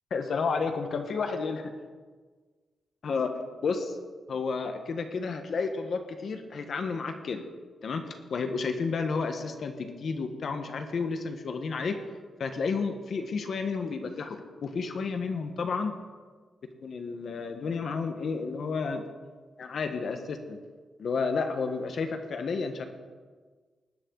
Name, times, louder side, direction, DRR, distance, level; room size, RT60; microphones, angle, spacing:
voice 1, 0.1-1.7 3.0-3.3 3.6-4.0 4.3-7.4 7.8-12.0 12.4-15.9 16.8-19.0 19.6-20.6 21.0-22.8, left 4 dB, 50° left, 6 dB, 1.1 m, -31 dB
20.0 x 9.9 x 3.9 m, 1.5 s
wide cardioid pair, 165°, 0 cm